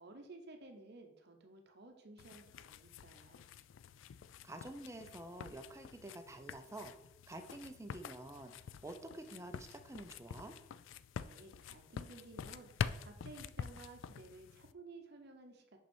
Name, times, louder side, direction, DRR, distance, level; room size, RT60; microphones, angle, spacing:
voice 1, 0.0-3.4 11.2-15.8, right 2 dB, 60° right, 5 dB, 0.8 m, -55 dB
sound 1, 2.2-14.7, left 7 dB, 75° left, 0.3 m, -47 dB
voice 2, 4.4-7.0 7.3-10.5, right 1 dB, 15° right, 6 dB, 0.6 m, -49 dB
5.8 x 5.6 x 4.4 m, 0.85 s
head